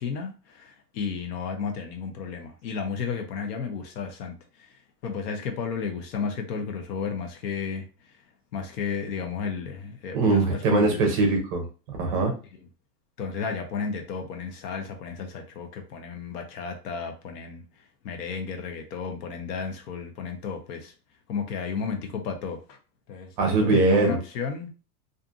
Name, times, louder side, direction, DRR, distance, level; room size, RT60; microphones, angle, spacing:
voice 1, 0.0-8.2 8.5-11.0 12.6-12.7 13.2-17.6 18.0-20.9 21.3-22.8 23.1-24.7, left 5 dB, 70° left, 4 dB, 0.8 m, -33 dB
voice 2, 10.1-11.6 11.9-12.3 23.4-24.2, right 3 dB, 30° right, 2 dB, 0.6 m, -21 dB
2.6 x 2.5 x 2.4 m, 0.34 s
supercardioid pair, 165°, 49 cm